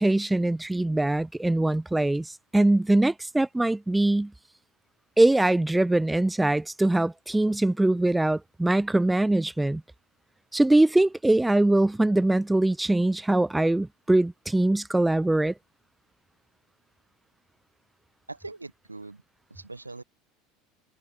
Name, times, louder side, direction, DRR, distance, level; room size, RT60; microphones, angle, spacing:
voice 1, 0.0-4.3 5.2-9.8 10.5-15.5, right 2 dB, 10° right, 1.8 m, -22 dB
voice 2, 18.3-19.2 19.5-20.0, right 3 dB, 90° right, 5.7 m, -41 dB
figure-of-eight pair, 70°, 0 cm